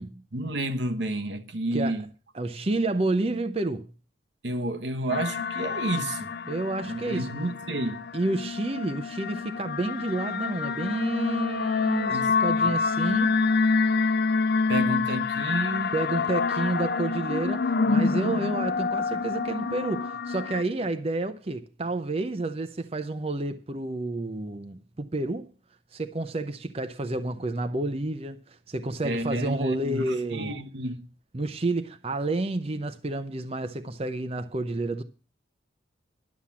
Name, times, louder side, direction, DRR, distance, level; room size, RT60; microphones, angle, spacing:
voice 1, 0.3-2.0 4.4-6.3 6.8-8.0 12.1-12.3 12.6-12.7 14.7-15.9 29.0-31.1, right 1 dB, 75° right, 1.2 m, -30 dB
voice 2, 2.3-3.9 6.5-7.3 8.1-13.4 15.9-25.5 25.9-30.5 31.3-35.0, right 2 dB, 35° right, 0.7 m, -30 dB
sound 1, 5.1-20.6, left 4 dB, 55° left, 0.5 m, -27 dB
11.5 x 7.2 x 7.3 m
head